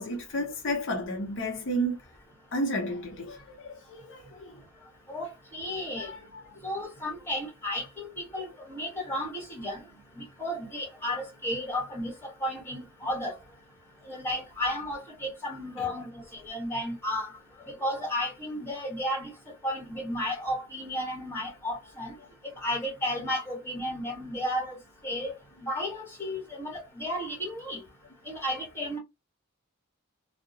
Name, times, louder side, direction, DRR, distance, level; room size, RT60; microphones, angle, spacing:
voice 1, 0.0-2.0 2.5-4.6 6.0-6.5 15.8-15.9, equal, 60° left, 0.6 m, -32 dB
voice 2, 5.5-6.1 6.6-9.8 10.2-13.3 14.1-16.1 16.4-17.3 17.8-19.3 19.6-22.1 22.6-24.8 25.0-25.3 25.6-27.8 28.3-29.0, left 1 dB, 10° left, 1.1 m, -33 dB
2.7 x 2.0 x 2.6 m
head